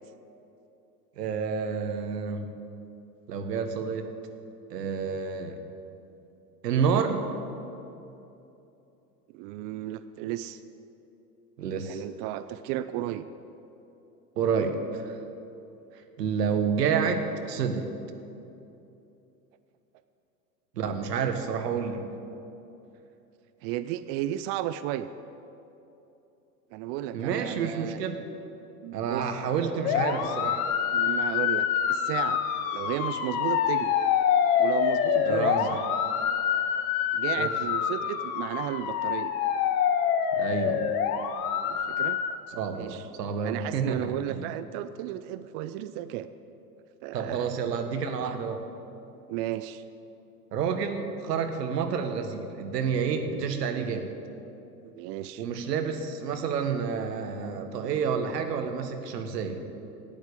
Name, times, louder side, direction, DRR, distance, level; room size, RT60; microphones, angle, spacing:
voice 1, 1.2-2.5 3.3-4.1 4.7-5.6 6.6-7.2 11.6-12.0 14.4-15.2 16.2-17.9 20.8-22.0 27.1-28.2 28.9-30.6 35.2-35.7 37.4-37.5 40.4-40.8 42.5-44.4 47.1-48.6 50.5-54.1 55.4-59.7, right 6 dB, 70° right, 6 dB, 1.5 m, -29 dB
voice 2, 9.3-10.6 11.8-13.2 23.6-25.1 26.7-28.0 28.8-29.3 30.9-32.4 32.7-34.0 34.6-35.9 37.1-39.3 41.6-42.2 42.7-43.0 43.4-46.3 47.0-47.5 49.3-49.8 54.8-55.4, right 13 dB, 35° right, 13 dB, 0.5 m, -34 dB
sound 1, 29.8-42.3, left 8 dB, 55° left, 1.3 m, -26 dB
12.0 x 9.4 x 8.3 m, 2.9 s
hypercardioid pair, 90°, 50 cm